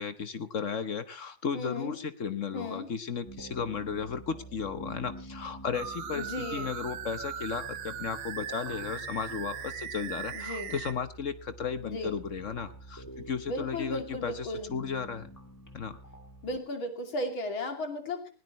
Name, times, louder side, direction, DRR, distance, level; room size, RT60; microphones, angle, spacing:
voice 1, 0.0-15.3 15.7-16.0, left 6 dB, 50° left, 11 dB, 1.1 m, -35 dB
voice 2, 1.5-2.0 2.5-2.9 6.1-6.7 10.3-10.8 11.8-12.2 13.5-14.7 16.4-18.3, left 1 dB, 80° left, 5 dB, 3.6 m, -35 dB
sound 1, 3.3-16.6, right 1 dB, 10° left, 2.2 m, -48 dB
sound 2, 5.7-10.9, right 8 dB, 75° right, 1.9 m, -39 dB
20.5 x 18.0 x 3.1 m, 0.34 s
omnidirectional pair, 2.2 m